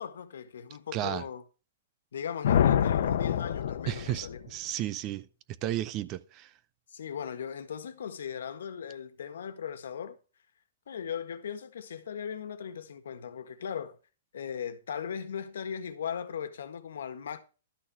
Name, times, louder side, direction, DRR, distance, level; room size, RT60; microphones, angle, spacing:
voice 1, 0.0-1.4 2.1-4.4 6.9-10.2 10.9-14.0 14.3-17.4, left 7 dB, 85° left, 1.6 m, -38 dB
voice 2, 0.9-1.2 3.9-5.3 5.6-6.5, right 14 dB, 25° right, 0.5 m, -33 dB
sound 1, 2.4-4.4, left 9 dB, 60° left, 0.9 m, -26 dB
12.5 x 6.5 x 4.7 m
hypercardioid pair, 175°, 0 cm